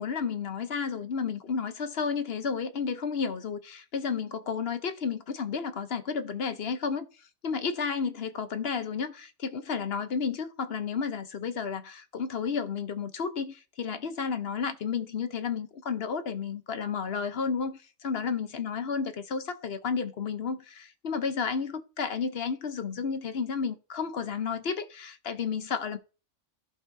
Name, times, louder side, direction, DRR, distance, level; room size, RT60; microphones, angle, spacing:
voice 1, 0.0-7.1 7.4-26.0, left 6 dB, 55° left, 0.9 m, -32 dB
15.0 x 5.4 x 2.7 m
omnidirectional pair, 1.4 m